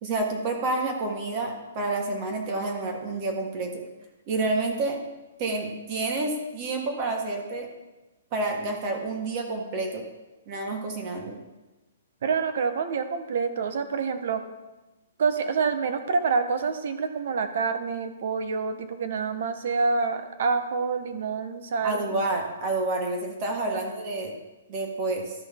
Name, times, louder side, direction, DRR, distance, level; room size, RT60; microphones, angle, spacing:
voice 1, 0.0-3.8 4.3-5.0 5.4-7.7 8.3-10.0 10.5-11.4 21.8-24.3 24.7-25.3, right 2 dB, 30° right, 2 dB, 1.5 m, -29 dB
voice 2, 12.2-14.5 15.2-22.1, right 5 dB, 55° right, 9 dB, 1.0 m, -27 dB
13.0 x 5.3 x 3.7 m, 1.1 s
hypercardioid pair, 165°, 0 cm